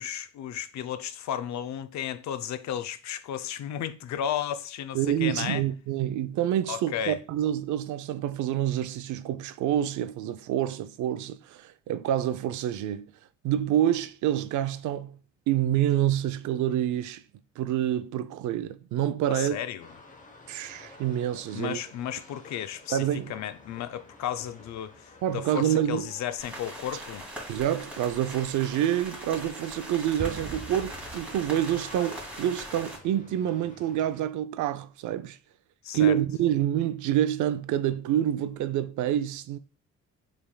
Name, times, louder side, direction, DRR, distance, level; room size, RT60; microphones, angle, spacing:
voice 1, 0.0-5.6 6.7-7.2 19.3-19.9 21.5-27.3 35.8-36.1, left 10 dB, 65° left, 0.5 m, -34 dB
voice 2, 4.9-13.1 13.4-15.2 15.5-17.2 17.6-19.6 20.5-21.8 22.9-23.3 25.2-26.1 27.5-35.4 35.9-39.6, right 11 dB, 75° right, 0.5 m, -27 dB
sound 1, 19.8-34.2, left 3 dB, 25° left, 0.8 m, -52 dB
sound 2, 26.4-33.0, right 1 dB, 5° right, 2.4 m, -41 dB
Explosion, 30.2-31.9, right 3 dB, 35° right, 1.1 m, -40 dB
6.8 x 3.4 x 2.2 m
cardioid pair, 90°, 30 cm